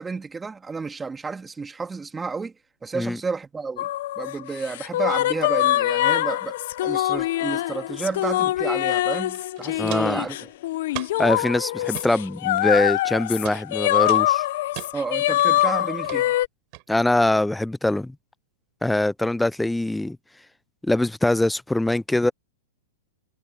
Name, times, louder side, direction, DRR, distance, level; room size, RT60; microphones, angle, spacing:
voice 1, 0.0-2.5 2.8-3.9 4.2-10.5 14.9-16.4, right 4 dB, 10° right, 2.1 m, -31 dB
sound 1, 3.8-16.5, left 15 dB, 60° left, 0.5 m, -24 dB
Walk footsteps, 9.0-9.1 9.3-10.2 10.9-11.3 11.8-12.1 12.8-13.1 13.5-13.6 14.1-14.9 15.4-15.7 16.0-16.2 16.7-16.8, right 33 dB, 45° right, 6.6 m, -37 dB
voice 2, 9.8-10.2 11.2-14.4 16.9-18.1 18.8-20.2 20.8-22.3, left 1 dB, 5° left, 0.3 m, -23 dB
hypercardioid pair, 130°, 0 cm